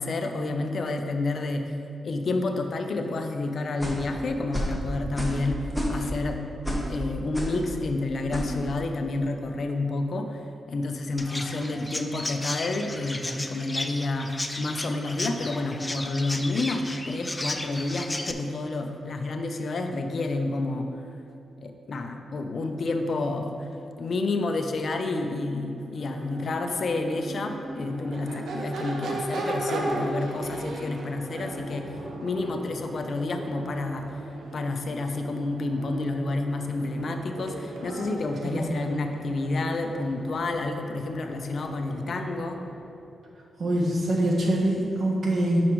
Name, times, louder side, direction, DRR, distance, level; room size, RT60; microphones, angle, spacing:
voice 1, 0.0-1.6 2.0-6.4 6.7-20.9 21.6-23.7 24.0-31.9 32.2-34.2 34.5-42.6, left 2 dB, 60° left, 5 dB, 0.6 m, -29 dB
sound 1, 3.8-4.1 4.5-4.8 5.2-5.4 5.7-6.2 6.6-6.9 7.3-7.6 8.3-8.5, equal, ahead, 1.4 m, -29 dB
Chirp tweet, 11.2-18.3, left 1 dB, 20° left, 0.5 m, -34 dB
Crowd / Race car auto racing / Accelerating revving vroom, 25.8-42.9, right 2 dB, 90° right, 1.0 m, -37 dB
voice 2, 38.4-38.8 43.6-45.6, right 1 dB, 60° right, -4 dB, 1.6 m, -24 dB
9.7 x 6.2 x 3.1 m, 2.6 s
cardioid pair, 75°, 0 cm